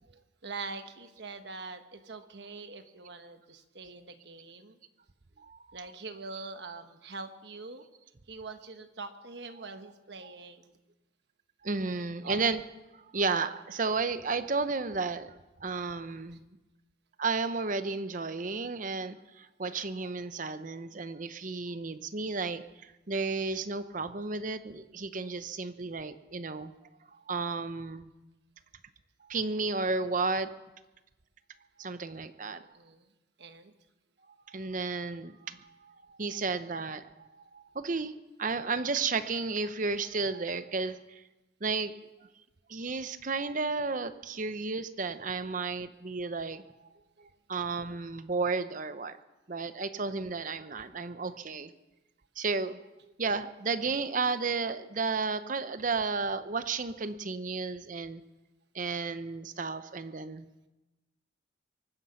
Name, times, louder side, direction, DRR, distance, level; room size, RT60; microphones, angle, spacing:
voice 1, 0.4-4.8 5.7-7.8 8.3-10.8 12.0-12.5 32.7-33.0 33.4-33.7 49.6-49.7, right 3 dB, 60° right, 8 dB, 1.2 m, -44 dB
voice 2, 11.6-12.6 13.1-15.3 15.6-16.4 17.2-22.6 23.1-26.7 27.3-28.1 29.2-30.5 31.8-32.6 34.5-35.6 36.2-37.3 37.5-38.1 38.4-41.0 41.6-41.9 42.7-46.6 47.5-49.1 49.5-51.7 52.4-52.8 53.2-58.2 58.7-60.4, right 4 dB, 40° right, 11 dB, 0.8 m, -32 dB
24.0 x 10.0 x 5.7 m, 1.0 s
head